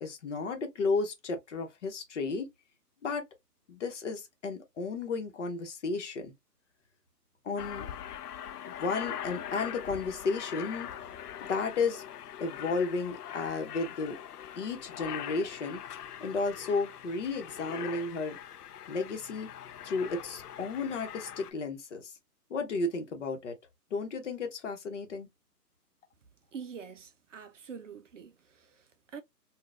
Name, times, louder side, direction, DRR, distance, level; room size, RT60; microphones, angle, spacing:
voice 1, 0.0-2.5 3.0-3.2 3.7-6.3 7.4-7.9 8.7-10.9 11.5-12.0 12.4-14.2 14.6-15.8 16.2-18.4 18.9-19.5 19.8-22.1 22.5-23.5 23.9-25.3, left 4 dB, 45° left, 1.0 m, -33 dB
Aircraft, 7.6-21.5, left 10 dB, 70° left, 0.5 m, -42 dB
voice 2, 26.5-29.2, right 6 dB, 50° right, 0.5 m, -45 dB
3.7 x 2.4 x 2.4 m
hypercardioid pair, 155°, 49 cm